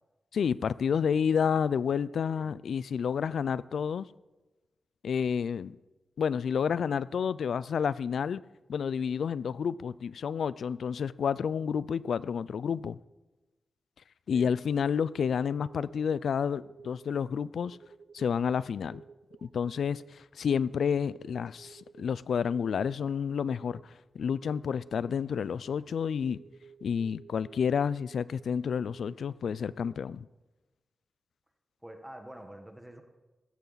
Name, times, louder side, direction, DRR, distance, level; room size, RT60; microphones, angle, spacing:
voice 1, 0.3-4.1 5.0-5.8 6.2-8.4 8.7-13.0 14.3-17.8 18.1-19.0 19.4-26.4 26.8-30.3, left 7 dB, 85° left, 0.4 m, -30 dB
sound 1, 15.1-16.3 16.6-17.2 17.6-18.2 18.8-19.8 20.9-22.9 23.3-23.8 24.3-25.3 26.3-27.6 27.9-28.4 28.8-29.9, right 6 dB, 80° right, 0.8 m, -54 dB
voice 2, 31.8-33.0, right 1 dB, 5° right, 1.2 m, -47 dB
15.5 x 14.0 x 4.0 m
wide cardioid pair, 175°, 0 cm